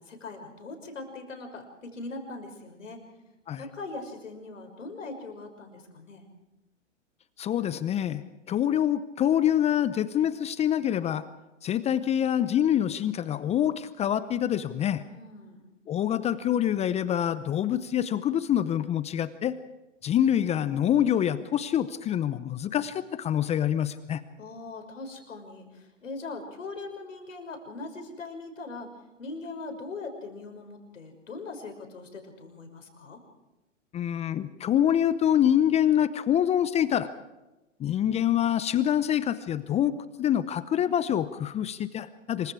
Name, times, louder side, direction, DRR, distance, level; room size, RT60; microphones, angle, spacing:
voice 1, 0.0-3.0 3.6-6.3 15.0-15.6 24.4-28.9 29.2-33.2, left 3 dB, 80° left, 4 dB, 6.1 m, -41 dB
voice 2, 7.4-8.2 8.5-11.2 11.6-15.0 15.9-19.6 20.0-24.2 33.9-37.1 37.8-42.5, left 10 dB, 15° left, 15 dB, 0.7 m, -26 dB
26.5 x 24.0 x 4.9 m, 1.0 s
hypercardioid pair, 115°, 38 cm